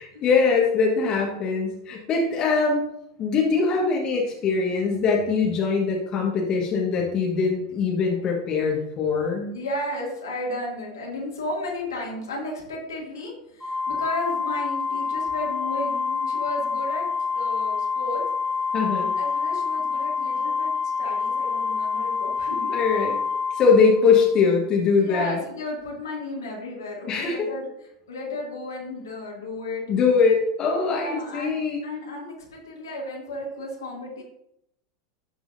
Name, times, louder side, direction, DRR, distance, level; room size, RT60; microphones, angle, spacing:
voice 1, 0.0-2.8 3.2-9.6 18.7-19.1 22.7-23.2 23.5-25.4 27.1-27.5 29.9-31.8, left 5 dB, 40° left, -1 dB, 1.4 m, -22 dB
voice 2, 9.5-17.1 17.4-18.3 19.2-20.7 21.0-22.8 25.0-27.7 28.1-29.8 30.9-31.6 31.8-34.2, left 1 dB, 75° left, -3 dB, 2.3 m, -33 dB
Organ, 13.6-24.3, left 5 dB, ahead, 1.7 m, -27 dB
11.5 x 4.8 x 2.6 m, 0.81 s
figure-of-eight pair, 85°, 2 cm